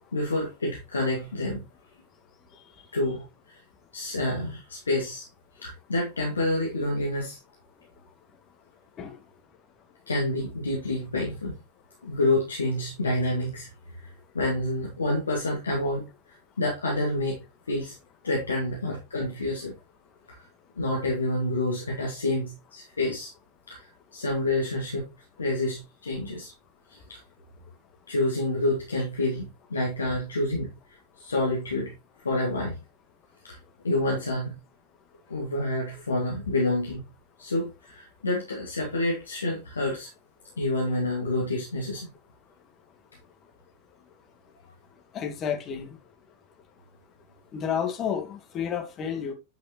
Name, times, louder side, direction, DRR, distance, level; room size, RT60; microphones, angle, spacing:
voice 1, 0.1-1.6 2.9-3.6 3.9-5.3 5.6-7.4 10.1-11.5 12.0-17.9 18.2-19.7 20.3-20.4 20.8-23.3 23.7-25.0 25.4-26.5 26.9-27.2 28.1-31.9 32.2-32.8 33.4-33.6 33.8-34.6 35.3-37.0 37.4-40.1 40.6-42.1, left 2 dB, 75° left, 2.1 m, -28 dB
voice 2, 45.1-45.9 47.5-49.3, left 8 dB, 30° left, 1.9 m, -30 dB
9.2 x 5.6 x 3.0 m
figure-of-eight pair, 90°, 0 cm